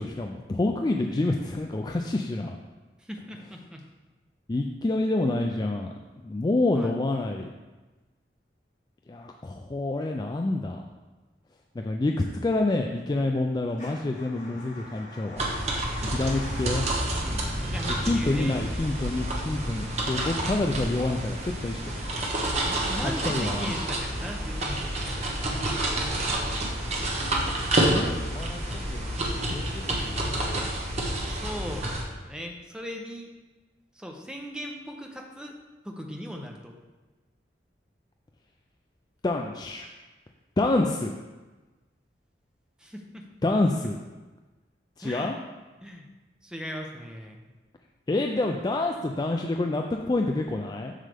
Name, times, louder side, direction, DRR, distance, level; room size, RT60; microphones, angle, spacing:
voice 1, 0.0-2.6 4.5-7.5 9.1-10.9 11.8-12.1 12.4-15.5 16.1-16.9 17.9-22.0 23.2-23.7 27.9-30.6 39.2-39.9 40.6-41.1 43.4-44.0 45.0-45.4 48.1-50.9, left 2 dB, 25° left, 2 dB, 0.3 m, -28 dB
voice 2, 3.0-3.8 6.7-6.9 15.9-16.3 17.2-18.6 22.6-25.3 31.2-33.3 33.9-35.5 35.8-36.7 42.8-43.3 45.0-45.3 45.8-46.1 46.4-47.5, equal, 5° right, 1 dB, 0.7 m, -39 dB
Motor vehicle (road) / Engine starting / Idling, 13.7-30.7, left 1 dB, 45° left, 2.5 m, -47 dB
sound 1, 15.4-32.0, right 1 dB, 40° right, 1.1 m, -29 dB
7.4 x 6.5 x 3.4 m, 1.2 s
head